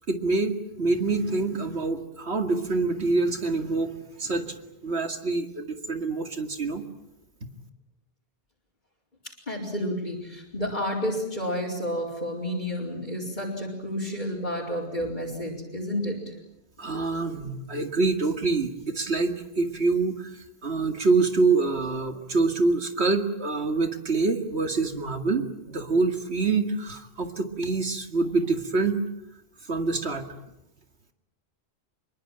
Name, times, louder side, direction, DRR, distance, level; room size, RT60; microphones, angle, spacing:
voice 1, 0.1-3.9 4.2-4.5 4.8-6.8 16.8-20.3 20.6-29.0 29.7-30.3, right 3 dB, 70° right, 6 dB, 2.5 m, -26 dB
voice 2, 9.5-16.3, equal, 40° left, -6 dB, 4.8 m, -30 dB
26.5 x 22.5 x 9.0 m, 0.86 s
omnidirectional pair, 1.1 m